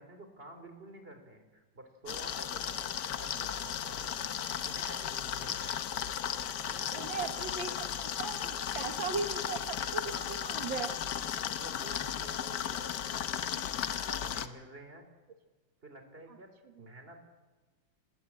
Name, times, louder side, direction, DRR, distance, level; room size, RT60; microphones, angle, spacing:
voice 1, 0.0-5.8 6.6-7.9 9.9-11.0 11.5-13.7 14.1-15.1 15.8-16.5 16.8-17.2, right 2 dB, 30° right, 7 dB, 3.5 m, -50 dB
sound 1, 2.1-14.5, left 9 dB, 65° left, 1.5 m, -35 dB
voice 2, 6.9-7.7 8.2-10.9 16.8-16.9, right 5 dB, 75° right, 7 dB, 2.0 m, -37 dB
27.0 x 19.0 x 8.7 m, 1.3 s
omnidirectional pair, 2.1 m